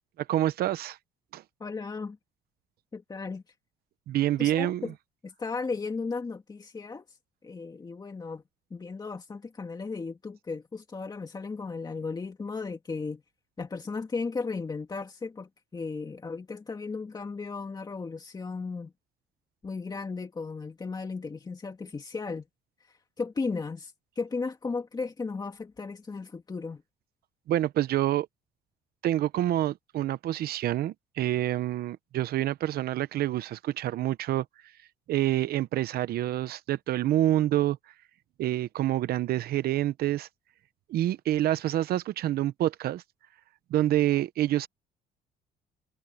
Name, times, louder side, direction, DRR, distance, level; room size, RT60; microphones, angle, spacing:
voice 1, 0.3-1.0 1.3-1.4 4.1-4.9 27.5-28.3 29.0-34.4 35.1-37.8 38.4-40.3 40.9-43.0 43.7-44.7, right 13 dB, 65° right, 0.9 m, -27 dB
voice 2, 1.6-2.2 2.9-3.4 4.4-4.9 5.2-7.2 7.4-8.4 8.7-13.2 13.6-18.9 19.6-22.5 22.9-26.8, left 4 dB, 25° left, 2.0 m, -35 dB
cardioid pair, 110°, 17 cm